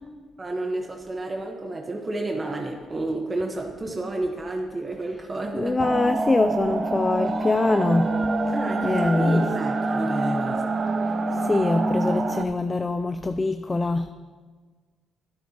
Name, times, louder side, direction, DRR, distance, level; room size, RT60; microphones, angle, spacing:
voice 1, 0.4-5.8 8.5-10.6, right 2 dB, 25° right, 1 dB, 1.2 m, -30 dB
voice 2, 5.5-8.1 8.8-9.5 11.4-14.1, left 2 dB, 25° left, 8 dB, 0.4 m, -23 dB
sound 1, 5.8-12.4, right 2 dB, 45° right, 0.7 m, -26 dB
12.5 x 10.5 x 3.0 m, 1.4 s
cardioid pair, 90°, 0 cm